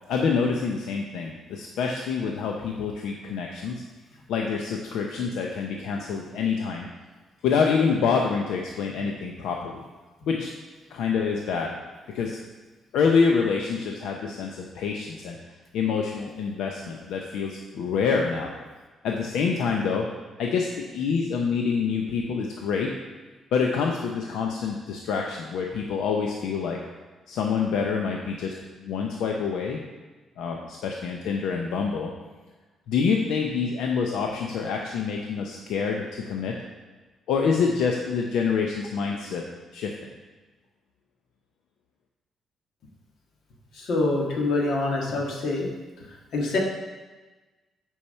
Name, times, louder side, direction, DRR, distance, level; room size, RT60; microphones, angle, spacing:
voice 1, 0.1-3.8 4.3-6.9 7.4-9.9 10.3-10.5 10.9-11.8 12.1-12.4 12.9-15.4 15.7-18.5 19.0-20.1 20.4-22.9 23.5-26.8 27.3-28.5 28.8-29.8 30.4-32.1 32.9-36.5 37.3-39.4 39.7-39.9, left 5 dB, 90° left, 1 dB, 0.7 m, -26 dB
voice 2, 43.7-45.7 46.3-46.6, left 2 dB, 65° left, -1 dB, 1.7 m, -25 dB
8.7 x 4.7 x 5.6 m, 1.2 s
cardioid pair, 165°, 0 cm